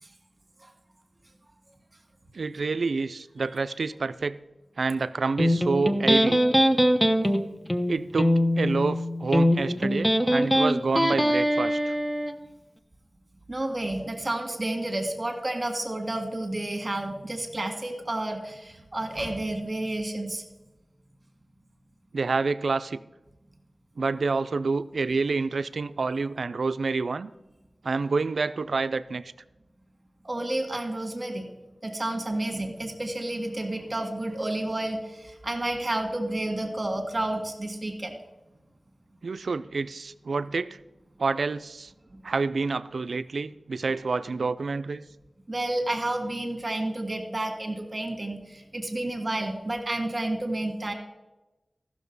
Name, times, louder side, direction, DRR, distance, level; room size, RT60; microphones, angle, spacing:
voice 1, 2.3-4.4 4.8-6.5 7.9-12.0 22.1-23.0 24.0-27.3 27.8-29.3 39.2-40.8 41.2-41.9 42.2-45.0, right 4 dB, 80° right, 14 dB, 0.4 m, -28 dB
Electric guitar, 5.4-12.4, equal, 5° left, 0.8 m, -22 dB
voice 2, 13.5-20.4 30.2-31.4 31.8-38.2 45.5-50.9, right 1 dB, 35° right, 4 dB, 1.7 m, -30 dB
14.0 x 6.4 x 5.4 m, 1.0 s
wide cardioid pair, 55°, 0 cm